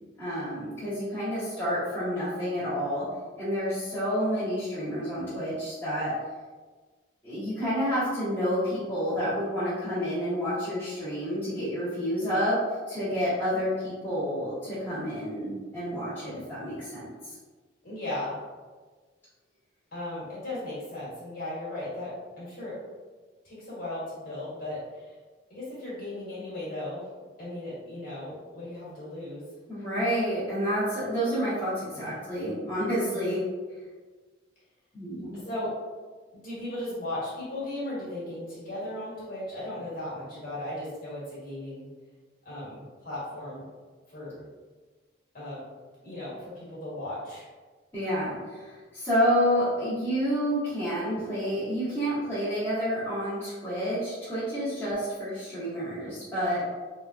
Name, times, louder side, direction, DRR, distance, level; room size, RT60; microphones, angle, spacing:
voice 1, 0.2-3.0 3.4-6.1 7.2-12.6 12.9-17.3 29.7-33.4 34.9-35.4 47.9-56.6, equal, 10° left, -14 dB, 1.2 m, -29 dB
voice 2, 17.8-18.4 19.9-22.8 23.4-25.1 25.5-27.1 27.4-29.4 31.9-32.2 33.1-33.3 35.3-35.7 36.3-41.9 42.4-43.6 44.1-44.4 45.3-45.6 46.0-47.5, left 1 dB, 45° left, -9 dB, 1.4 m, -36 dB
3.6 x 2.3 x 2.6 m, 1.4 s
head